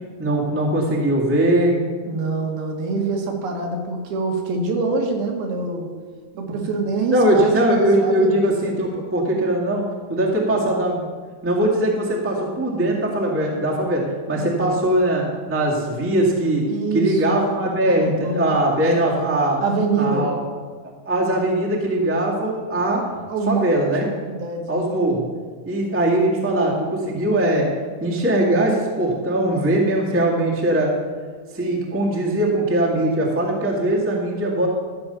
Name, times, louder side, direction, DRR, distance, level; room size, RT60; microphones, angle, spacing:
voice 1, 0.2-1.8 6.3-6.7 7.1-9.8 10.1-11.0 11.4-14.0 14.3-16.6 16.9-19.6 20.0-20.3 21.0-23.0 23.5-24.0 24.7-25.3 25.6-27.7 28.0-30.9 31.5-34.7, right 1 dB, 15° right, -4 dB, 0.5 m, -20 dB
voice 2, 2.1-5.9 6.4-7.5 7.8-8.3 14.3-14.7 16.7-17.4 18.0-18.6 19.6-20.3 23.3-23.6 24.2-24.8, right 4 dB, 85° right, 2 dB, 3.2 m, -25 dB
13.0 x 5.0 x 6.8 m, 1.5 s
omnidirectional pair, 4.2 m